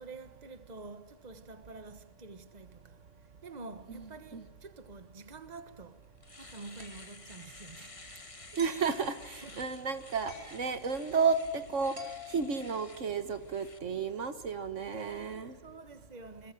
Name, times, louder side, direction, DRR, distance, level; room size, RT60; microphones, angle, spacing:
voice 1, 0.0-3.0 3.4-6.1 6.4-8.0 9.3-9.6 10.4-10.6 14.9-16.5, right 3 dB, 35° right, 1.5 m, -48 dB
Domestic sounds home sounds, 5.6-5.7 6.0-13.8, left 3 dB, 25° left, 1.5 m, -52 dB
sound 1, 6.8-7.1 8.6-8.9 10.3-10.6 12.0-13.4, left 3 dB, 55° right, 4.0 m, -47 dB
voice 2, 8.5-12.0 12.3-15.6, right 5 dB, 70° right, 1.7 m, -32 dB
28.0 x 21.5 x 7.7 m
omnidirectional pair, 1.3 m